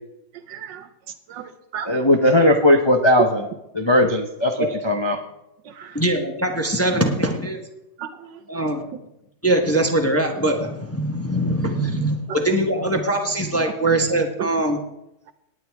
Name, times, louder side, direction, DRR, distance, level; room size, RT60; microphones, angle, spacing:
voice 1, 0.5-0.9 1.3-1.9 5.6-6.0 8.0-8.4 14.4-14.5, right 8 dB, 85° right, 10 dB, 1.6 m, -34 dB
voice 2, 1.8-3.5 3.7-5.2, left 1 dB, 45° left, 3 dB, 0.3 m, -18 dB
voice 3, 5.9-7.6 8.5-8.9 9.4-14.8, right 1 dB, 10° left, 3 dB, 0.8 m, -22 dB
18.5 x 8.9 x 3.5 m, 0.86 s
omnidirectional pair, 1.9 m